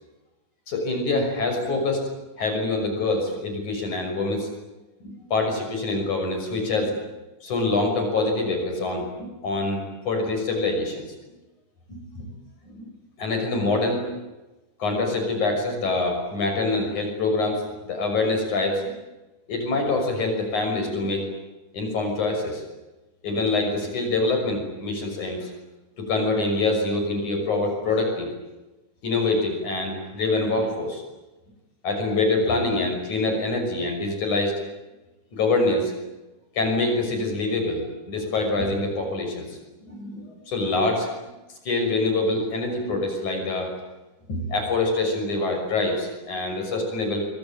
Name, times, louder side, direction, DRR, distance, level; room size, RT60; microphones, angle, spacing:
voice 1, 0.7-2.0 2.4-4.5 5.0-7.0 7.4-11.0 11.9-12.0 12.6-12.9 13.2-14.1 14.8-18.9 19.5-21.2 21.7-22.6 23.2-25.5 26.0-28.3 29.0-31.0 31.8-34.5 35.3-35.9 36.6-39.6 39.8-41.1 41.7-43.7 44.3-47.3, left 2 dB, 65° left, 4 dB, 7.6 m, -25 dB
24.5 x 24.0 x 9.1 m, 1.1 s
omnidirectional pair, 3.7 m